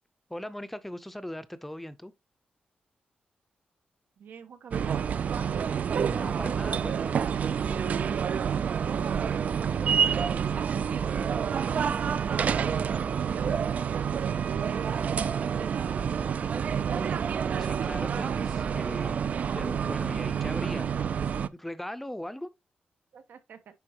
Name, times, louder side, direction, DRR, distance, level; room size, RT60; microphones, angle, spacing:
voice 1, 0.3-2.1 6.2-7.2 17.6-19.2 19.5-22.5, left 1 dB, 5° left, 0.6 m, -39 dB
voice 2, 4.2-5.0 5.3-5.6 8.8-14.9 15.5-17.2 23.1-23.6, right 7 dB, 90° right, 1.2 m, -44 dB
sound 1, 4.7-21.5, right 7 dB, 50° right, 0.3 m, -28 dB
9.9 x 4.4 x 2.9 m
wide cardioid pair, 170°, 3 cm